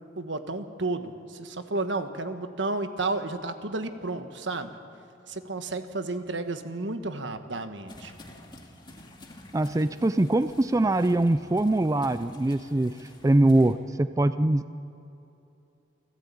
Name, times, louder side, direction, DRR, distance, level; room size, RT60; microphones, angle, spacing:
voice 1, 0.2-4.7 5.3-8.1, right 2 dB, 70° right, 8 dB, 1.4 m, -32 dB
sound 1, 7.9-13.7, left 1 dB, 25° left, 2.2 m, -50 dB
voice 2, 9.5-12.9 13.2-14.7, right 1 dB, 15° right, 12 dB, 0.4 m, -23 dB
29.0 x 13.0 x 8.5 m, 2.8 s
head